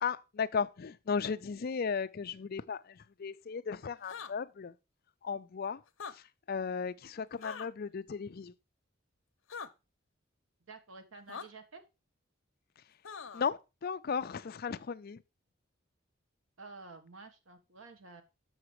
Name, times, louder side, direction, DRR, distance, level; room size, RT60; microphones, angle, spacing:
voice 1, 0.0-4.7 5.2-5.8 6.1-8.5 13.3-15.2, left 6 dB, 50° left, 0.4 m, -36 dB
sound 1, 4.0-4.3 5.9-6.1 7.4-7.7 9.5-9.7 11.3-11.5 13.0-13.5, left 6 dB, 75° left, 0.8 m, -42 dB
voice 2, 10.7-11.8 16.6-18.2, right 3 dB, 80° right, 1.4 m, -50 dB
7.3 x 5.9 x 4.7 m
head